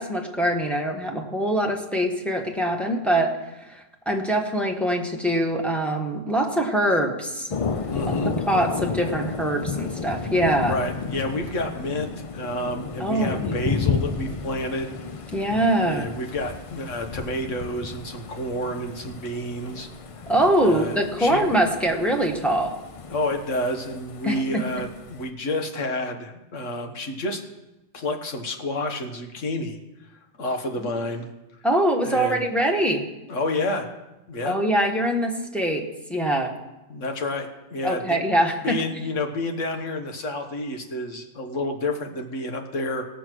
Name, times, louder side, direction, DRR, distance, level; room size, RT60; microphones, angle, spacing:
voice 1, 0.0-3.4 3.7-7.5 8.5-10.8 13.0-13.5 15.3-16.1 20.3-22.8 24.2-24.6 30.8-30.9 31.6-33.1 34.4-36.5 37.8-38.8, right 1 dB, ahead, 2 dB, 1.3 m, -23 dB
Thunder, 7.5-25.3, left 5 dB, 55° left, 0.3 m, -32 dB
voice 2, 7.9-8.3 10.6-15.0 15.8-19.9 20.6-21.4 23.1-27.4 27.9-29.8 30.4-31.3 32.1-32.4 33.3-33.9 34.3-34.6 36.9-38.0 38.6-43.0, left 1 dB, 70° left, 4 dB, 1.6 m, -29 dB
17.0 x 7.1 x 6.2 m, 1.0 s
omnidirectional pair, 1.3 m